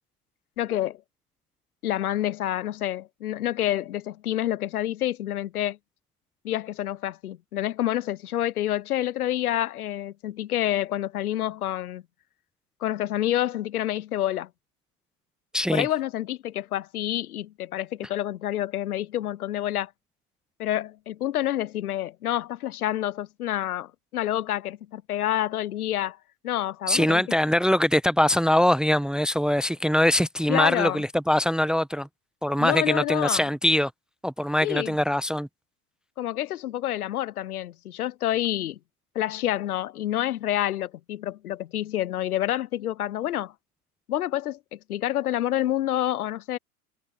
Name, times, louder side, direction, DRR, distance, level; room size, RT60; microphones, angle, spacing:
voice 1, 0.6-1.0 1.8-5.8 6.4-12.0 12.8-14.5 15.7-19.9 20.6-26.2 26.4-27.2 30.5-31.0 32.6-33.4 34.6-35.0 36.2-38.8 39.1-43.5 44.1-46.6, left 13 dB, 70° left, 1.0 m, -28 dB
voice 2, 15.5-15.9 26.9-32.1 32.4-33.9 34.2-35.5, left 1 dB, ahead, 1.0 m, -22 dB
figure-of-eight pair, 85°, 47 cm